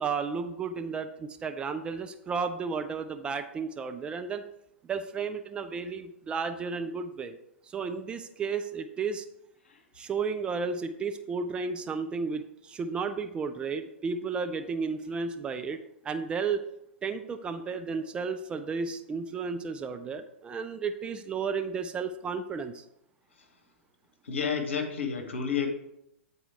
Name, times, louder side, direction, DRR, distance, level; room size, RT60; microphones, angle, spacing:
voice 1, 0.0-4.4 4.9-7.4 7.7-9.3 9.9-15.8 16.0-16.6 17.0-22.8, right 5 dB, 15° right, 7 dB, 0.3 m, -33 dB
voice 2, 24.2-25.7, left 6 dB, 65° left, 5 dB, 1.2 m, -30 dB
8.5 x 4.2 x 3.5 m, 0.81 s
figure-of-eight pair, 110°, 7 cm